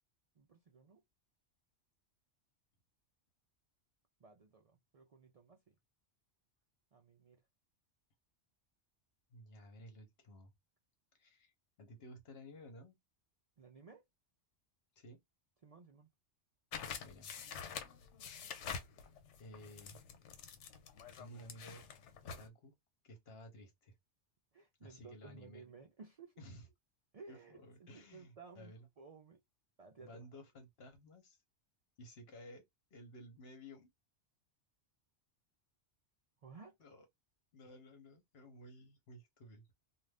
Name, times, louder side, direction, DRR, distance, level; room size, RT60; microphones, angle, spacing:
voice 1, 0.4-1.0 4.2-5.8 6.9-7.4 13.6-14.0 15.6-16.1 24.5-26.3 27.1-29.4 29.8-30.2 36.4-36.8, right 4 dB, 65° right, 0.3 m, -57 dB
voice 2, 9.3-10.5 11.1-11.5 11.8-13.0 15.0-15.2 17.0-17.3 19.4-20.0 21.2-21.8 22.2-22.7 23.0-23.9 24.8-25.6 26.4-26.7 27.3-28.9 30.0-31.4 32.0-32.6 32.9-33.9 36.8-37.1 37.5-39.7, equal, 60° left, 1.1 m, -55 dB
sound 1, 16.7-22.5, left 6 dB, 80° left, 0.9 m, -47 dB
2.5 x 2.3 x 3.2 m
omnidirectional pair, 1.2 m